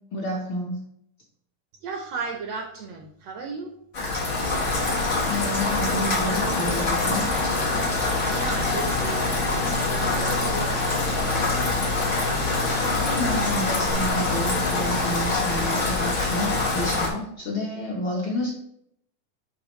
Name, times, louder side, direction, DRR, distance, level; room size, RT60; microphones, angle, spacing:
voice 1, 0.1-0.8 5.3-7.3 12.9-18.5, left 1 dB, 60° left, -4 dB, 1.4 m, -30 dB
voice 2, 1.8-3.7 8.3-9.2 9.9-11.0, right 4 dB, 70° right, 2 dB, 1.6 m, -34 dB
Rain, 3.9-17.1, left 3 dB, 80° left, 0.6 m, -24 dB
9.7 x 3.5 x 3.1 m, 0.71 s
omnidirectional pair, 3.6 m